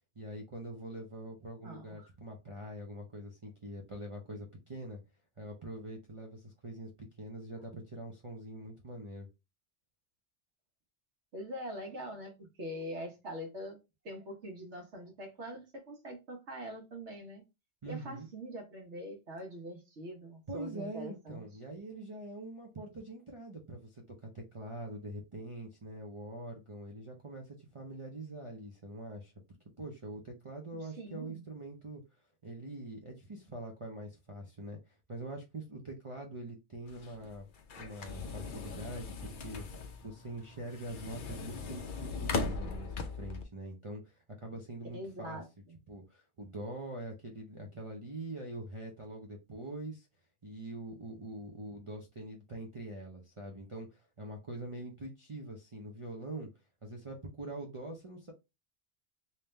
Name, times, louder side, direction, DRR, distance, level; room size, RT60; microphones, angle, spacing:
voice 1, 0.2-5.0 5.4-9.3 17.8-18.3 20.5-29.3 29.8-32.0 32.4-37.5 37.8-45.4 45.9-50.1 50.4-56.5 56.8-58.3, right 1 dB, 35° right, 0.6 m, -44 dB
voice 2, 1.6-2.1 11.3-13.8 14.0-17.4 17.8-21.4 31.0-31.4 44.9-45.8, equal, 85° right, 1.5 m, -43 dB
Slider door sound, 36.9-43.4, left 4 dB, 55° left, 0.7 m, -39 dB
3.5 x 2.8 x 3.2 m
omnidirectional pair, 1.1 m